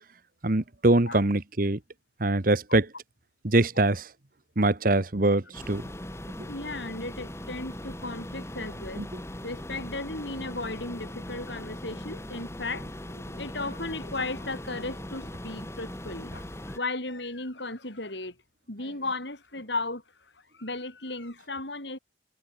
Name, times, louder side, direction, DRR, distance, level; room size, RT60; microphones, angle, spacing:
voice 1, 0.4-1.8 2.2-2.9 3.4-4.1 4.6-5.9 6.4-6.5 9.0-9.1, right 2 dB, 50° right, 1.3 m, -23 dB
sound 1, 5.5-16.8, left 1 dB, 15° left, 2.7 m, -40 dB
voice 2, 6.5-9.1 9.4-18.4 18.7-20.0 20.5-22.0, left 2 dB, 70° left, 7.3 m, -35 dB
head